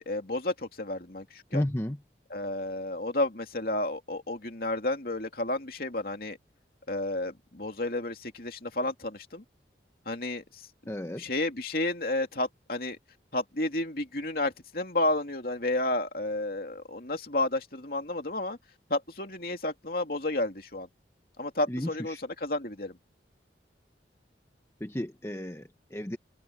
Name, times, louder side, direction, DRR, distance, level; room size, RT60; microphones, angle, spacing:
voice 1, 0.0-1.6 2.3-6.4 6.9-9.4 10.1-10.7 11.2-13.0 13.3-18.6 18.9-20.9 21.4-23.0, left 2 dB, 55° left, 2.8 m, -31 dB
voice 2, 1.5-2.0 10.9-11.2 21.7-22.2 24.8-26.2, left 1 dB, 15° left, 0.9 m, -33 dB
open air
head